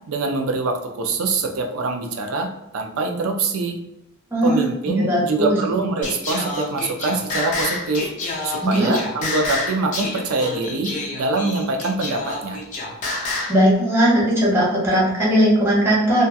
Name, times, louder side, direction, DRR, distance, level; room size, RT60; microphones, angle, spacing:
voice 1, 0.1-3.8 4.4-8.1 8.4-12.6, right 3 dB, 75° right, 4 dB, 0.4 m, -24 dB
voice 2, 4.3-4.6 5.1-5.6 8.6-8.9 13.5-16.2, equal, 10° right, -7 dB, 0.8 m, -18 dB
Singing, 6.0-13.6, left 2 dB, 35° left, 0.6 m, -28 dB
2.7 x 2.3 x 2.2 m, 0.88 s
head